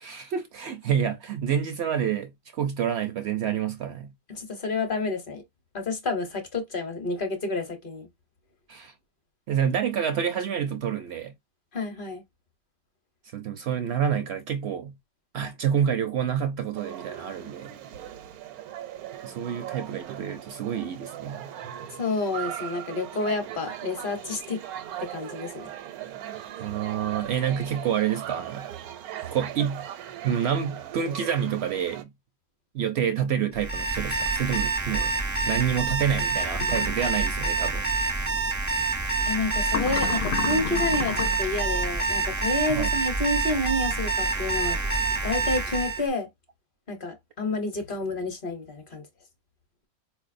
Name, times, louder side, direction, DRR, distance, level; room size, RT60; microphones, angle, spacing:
voice 1, 0.0-4.1 8.7-8.9 9.5-11.3 13.3-14.9 15.3-17.7 19.2-21.5 26.6-28.7 29.3-29.9 30.2-32.1 32.7-35.1 35.5-37.8 42.7-42.9, right 8 dB, 65° right, 0.6 m, -28 dB
voice 2, 4.3-5.4 5.7-8.1 11.7-12.2 22.0-24.6 25.0-25.7 39.3-44.8 45.2-46.3 46.9-49.0, left 2 dB, 45° left, 0.9 m, -29 dB
sound 1, 16.8-32.0, right 11 dB, 85° right, 1.1 m, -39 dB
Alarm, 33.6-46.0, right 3 dB, 25° right, 0.4 m, -27 dB
sound 2, 36.5-37.0 39.7-41.5, left 8 dB, 80° left, 0.5 m, -31 dB
4.4 x 2.6 x 2.5 m
omnidirectional pair, 1.5 m